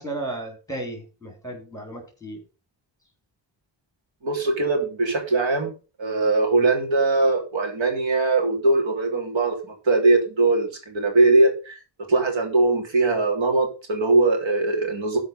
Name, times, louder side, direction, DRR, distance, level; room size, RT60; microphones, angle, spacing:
voice 1, 0.0-2.4, right 2 dB, 5° left, 5 dB, 3.2 m, -34 dB
voice 2, 4.2-5.7 6.0-9.5 9.8-11.8 12.1-15.2, right 3 dB, 85° right, 2 dB, 3.4 m, -21 dB
13.0 x 5.1 x 5.6 m, 0.33 s
wide cardioid pair, 145°, 44 cm